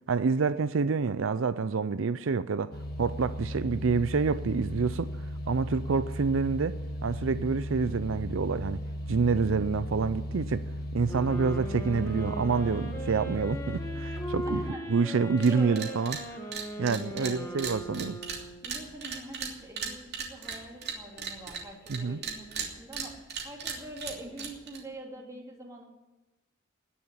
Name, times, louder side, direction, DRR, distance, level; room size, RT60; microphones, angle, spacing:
voice 1, 0.1-5.1 5.5-8.8 9.1-10.7 10.9-14.6 14.9-16.2 16.8-18.2 21.9-22.2, right 5 dB, 75° right, 14 dB, 0.5 m, -27 dB
sound 1, 2.7-14.7, left 1 dB, 50° left, 1.7 m, -36 dB
sound 2, 11.1-18.8, equal, 15° left, 2.2 m, -39 dB
voice 2, 14.4-14.9 15.4-16.0 17.2-17.7 18.6-25.8, right 1 dB, 15° right, -1 dB, 3.1 m, -44 dB
sound 3, 15.4-15.5 15.8-16.2 16.5-22.0 22.2-24.8, right 6 dB, 55° right, 2.9 m, -36 dB
19.0 x 7.1 x 9.9 m, 1.1 s
head